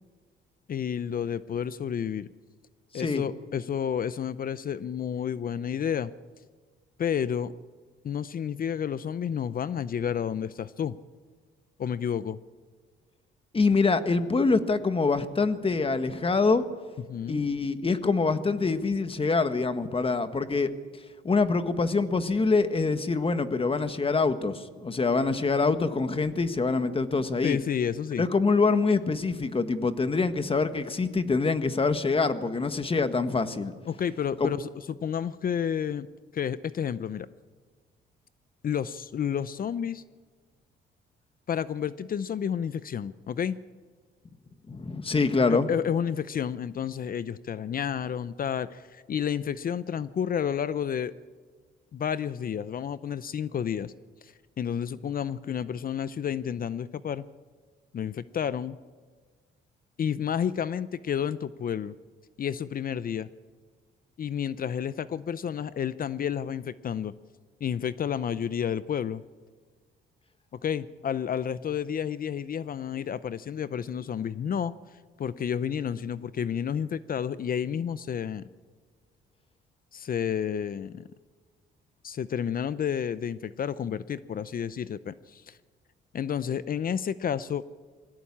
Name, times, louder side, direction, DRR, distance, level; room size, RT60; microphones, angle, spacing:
voice 1, 0.7-2.3 2.9-6.1 7.0-7.5 8.0-11.0 11.8-12.4 17.1-17.4 27.4-28.3 33.9-36.1 36.3-37.3 38.6-40.0 41.5-43.6 45.5-51.1 51.9-53.9 54.2-57.2 57.9-58.8 60.0-61.9 62.4-63.3 64.2-67.1 67.6-69.2 70.5-74.7 75.2-78.5 79.9-81.1 82.0-85.6 86.1-87.6, left 8 dB, 45° left, 16 dB, 0.6 m, -30 dB
voice 2, 13.5-16.7 17.3-20.7 21.2-27.6 28.2-33.7 34.4-34.5 44.7-45.7, left 4 dB, 25° left, 10 dB, 1.5 m, -25 dB
22.0 x 17.0 x 8.6 m, 1.5 s
cardioid pair, 90°, 20 cm